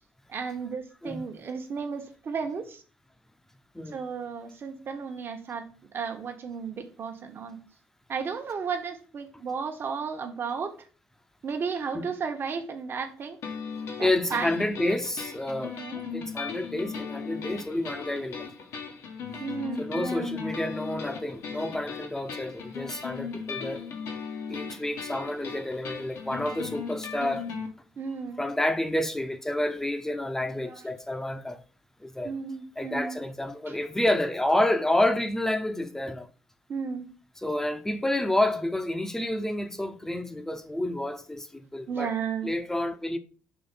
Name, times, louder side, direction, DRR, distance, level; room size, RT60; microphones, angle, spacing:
voice 1, 0.3-2.8 3.9-5.7 5.9-7.6 8.1-10.9 11.4-13.4 14.0-14.5 15.6-16.0 19.4-20.4 28.0-28.4 30.6-30.9 32.2-33.2 33.7-33.8 36.7-37.1 41.9-42.5, right 6 dB, 50° right, 1.3 m, -34 dB
sound 1, 13.4-27.7, left 6 dB, 75° left, 1.5 m, -37 dB
voice 2, 14.0-15.8 16.1-18.5 19.8-23.9 24.5-27.5 28.4-31.6 32.0-32.3 32.8-36.3 37.4-42.1 42.4-43.2, left 1 dB, 10° left, 0.9 m, -29 dB
5.9 x 3.2 x 5.4 m
supercardioid pair, 70°, 5 cm